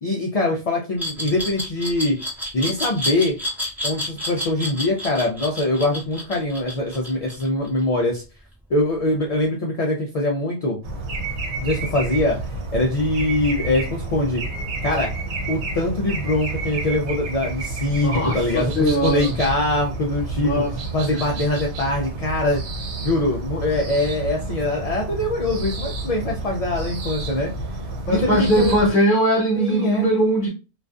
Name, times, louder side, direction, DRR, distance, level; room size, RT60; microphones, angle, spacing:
voice 1, 0.0-2.2 2.5-3.3 3.8-8.2 8.7-10.8 11.6-12.4 12.7-14.4 14.8-15.1 15.5-20.6 20.9-22.6 23.0-27.5 28.1-28.7 29.6-30.1, left 1 dB, 65° left, 0.3 m, -23 dB
Glass, 1.0-7.8, left 1 dB, ahead, 0.5 m, -29 dB
sound 1, 10.8-28.9, right 2 dB, 80° right, 1.0 m, -30 dB
voice 2, 18.0-19.4 20.3-20.8 21.1-21.3 28.1-30.5, equal, 50° left, 0.9 m, -20 dB
2.4 x 2.3 x 2.3 m
omnidirectional pair, 1.2 m